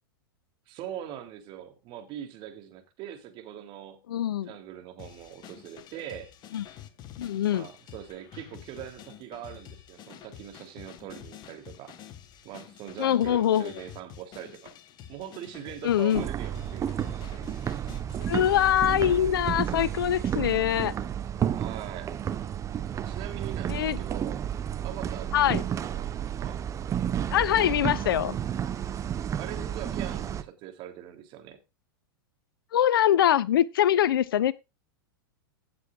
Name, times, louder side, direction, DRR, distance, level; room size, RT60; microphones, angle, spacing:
voice 1, 0.7-4.0 4.4-6.3 7.5-11.9 12.4-14.7 15.1-17.5 21.5-22.1 22.9-24.4 24.8-26.6 29.4-31.6, right 10 dB, 45° right, 3.6 m, -42 dB
voice 2, 4.1-4.5 6.5-6.6 7.2-7.7 13.0-13.7 15.8-16.3 18.3-20.9 23.7-24.0 25.3-25.6 27.3-28.3 32.7-34.5, left 11 dB, 75° left, 1.0 m, -23 dB
sound 1, 5.0-19.2, left 10 dB, 40° left, 2.1 m, -48 dB
sound 2, 16.1-30.4, right 9 dB, 25° right, 1.2 m, -31 dB
17.0 x 8.0 x 2.5 m
hypercardioid pair, 105°, 12 cm